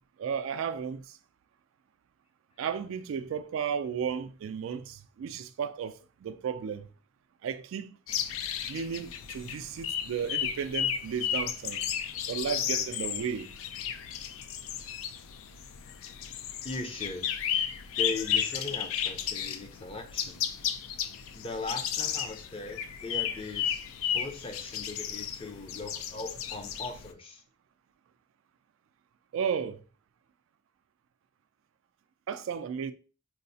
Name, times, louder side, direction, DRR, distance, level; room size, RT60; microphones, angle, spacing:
voice 1, 0.2-1.2 2.6-6.9 7.4-8.0 8.7-11.8 12.3-13.5 29.3-29.8 32.3-32.9, right 7 dB, 80° right, 0.3 m, -34 dB
sound 1, 8.1-27.1, left 9 dB, 85° left, 0.3 m, -34 dB
voice 2, 16.6-17.2 18.0-20.4 21.3-23.8 24.1-27.4, left 2 dB, 25° left, 0.5 m, -39 dB
4.6 x 2.0 x 2.6 m
head